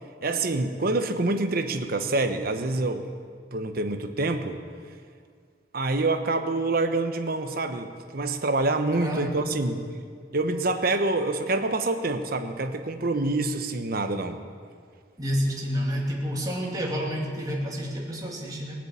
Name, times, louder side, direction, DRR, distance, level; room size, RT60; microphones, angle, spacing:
voice 1, 0.2-3.1 3.5-4.6 5.7-9.8 10.3-14.4, right 2 dB, 55° right, 7 dB, 1.1 m, -26 dB
voice 2, 9.0-9.4 15.2-18.7, equal, 20° right, -2 dB, 2.5 m, -29 dB
19.5 x 7.5 x 8.6 m, 2.1 s
head